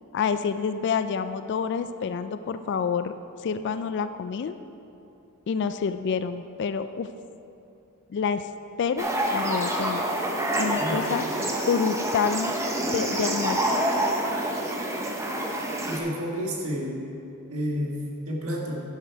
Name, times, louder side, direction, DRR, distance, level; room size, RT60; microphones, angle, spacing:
voice 1, 0.1-3.1 3.4-4.6 5.5-7.1 8.1-8.5 8.8-10.1 10.6-12.5 12.9-13.7, left 6 dB, 50° left, 11 dB, 0.3 m, -28 dB
sound 1, 9.0-16.0, right 1 dB, 15° right, 0.8 m, -27 dB
voice 2, 15.9-17.0 17.5-18.0 18.3-18.8, equal, 70° right, -2 dB, 1.8 m, -30 dB
10.5 x 7.5 x 4.6 m, 2.8 s
head